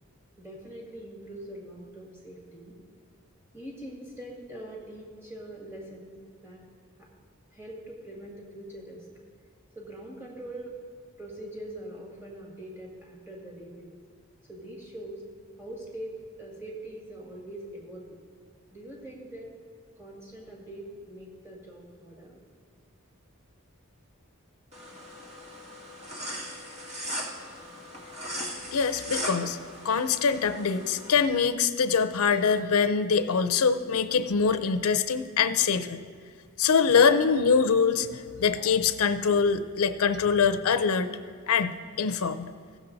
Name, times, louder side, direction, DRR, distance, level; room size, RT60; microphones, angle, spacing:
voice 1, 0.4-2.8 3.5-6.1 6.4-6.6 7.0-7.1 7.5-9.1 9.8-10.7 11.2-14.0 14.5-15.2 15.6-18.2 18.7-19.5 20.0-22.4, right 1 dB, 10° right, -3 dB, 1.9 m, -43 dB
sound 1, 24.7-31.2, equal, 30° right, 1.7 m, -38 dB
voice 2, 28.7-29.6 29.8-36.0 36.6-41.2 41.5-42.5, left 6 dB, 85° left, 11 dB, 0.5 m, -24 dB
15.5 x 7.2 x 3.9 m, 2.1 s
head